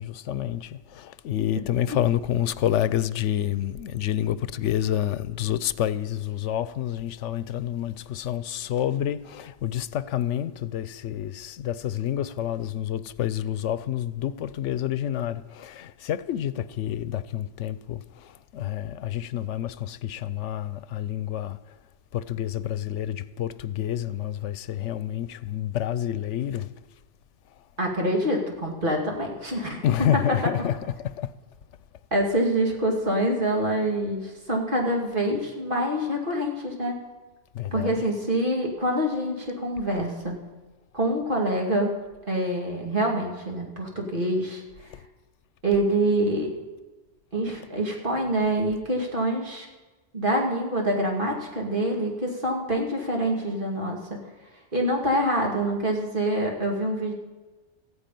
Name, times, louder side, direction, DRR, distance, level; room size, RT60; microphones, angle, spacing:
voice 1, 0.0-21.6 22.1-26.7 29.8-31.3 37.5-38.0, left 11 dB, 85° left, 1.0 m, -28 dB
voice 2, 27.8-30.4 32.1-36.9 37.7-40.4 40.9-41.9 42.3-44.6 45.6-46.6 47.3-49.7 50.1-54.2 54.7-57.1, right 1 dB, 45° right, 2.7 m, -26 dB
14.5 x 9.7 x 9.2 m
omnidirectional pair, 1.2 m